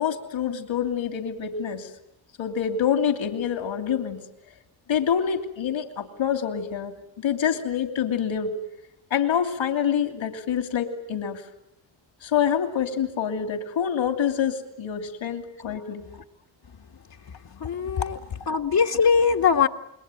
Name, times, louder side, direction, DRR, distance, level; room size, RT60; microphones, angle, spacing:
voice 1, 0.0-1.9 2.4-4.2 4.9-8.5 9.1-11.4 12.2-16.0 18.0-18.1, left 8 dB, 70° left, 7 dB, 3.0 m, -26 dB
voice 2, 17.6-18.2 18.5-19.7, left 6 dB, 50° left, 2 dB, 1.7 m, -21 dB
29.0 x 21.5 x 9.2 m, 0.80 s
supercardioid pair, 60°, 47 cm